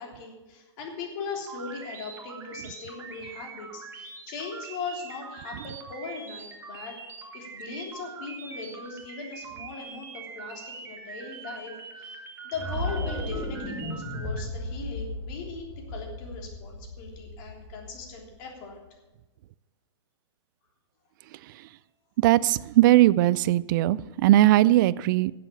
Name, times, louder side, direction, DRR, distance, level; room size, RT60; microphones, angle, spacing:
voice 1, 0.0-18.8, left 4 dB, 40° left, 0 dB, 3.4 m, -39 dB
sound 1, 1.5-14.4, right 5 dB, 15° right, 1.4 m, -43 dB
sound 2, 12.5-18.6, left 1 dB, ahead, 2.3 m, -35 dB
voice 2, 22.2-25.3, right 15 dB, 40° right, 19 dB, 0.4 m, -19 dB
12.0 x 7.8 x 7.0 m, 1.1 s
hypercardioid pair, 140°, 15 cm